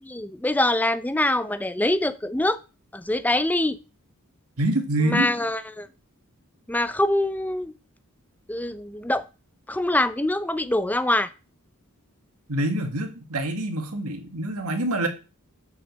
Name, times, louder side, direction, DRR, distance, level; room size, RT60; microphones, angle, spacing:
voice 1, 0.0-2.6 2.9-3.8 5.0-5.9 6.7-7.7 8.5-9.2 9.7-11.3, left 1 dB, 5° left, 0.5 m, -24 dB
voice 2, 4.6-5.3 12.5-15.1, right 1 dB, 80° right, 1.8 m, -26 dB
7.2 x 6.2 x 6.7 m
head